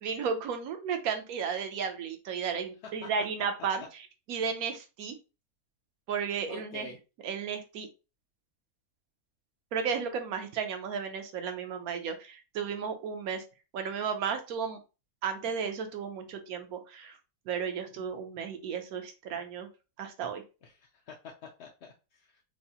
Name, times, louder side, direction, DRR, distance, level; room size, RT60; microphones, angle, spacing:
voice 1, 0.0-3.8 4.3-5.1 6.1-6.9 7.2-7.9 9.7-13.4 13.7-14.8 15.2-17.2 17.5-19.7 20.0-20.4, right 6 dB, 75° right, 6 dB, 1.1 m, -33 dB
voice 2, 6.5-7.0 20.6-22.5, left 5 dB, 60° left, 0 dB, 0.7 m, -47 dB
4.7 x 2.0 x 2.7 m, 0.30 s
omnidirectional pair, 1.6 m